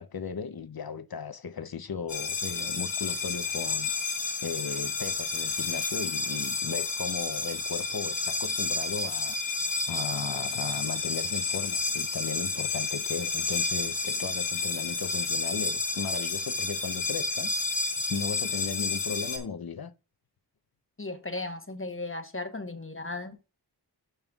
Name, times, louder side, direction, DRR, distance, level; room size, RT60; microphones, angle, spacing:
voice 1, 0.0-3.9 4.4-9.4 9.9-19.9, left 6 dB, 60° left, 0.7 m, -36 dB
sound 1, 2.1-19.4, left 4 dB, 80° left, 1.4 m, -30 dB
voice 2, 21.0-23.5, left 2 dB, 30° left, 1.1 m, -36 dB
12.5 x 5.4 x 2.3 m
wide cardioid pair, 55°, 42 cm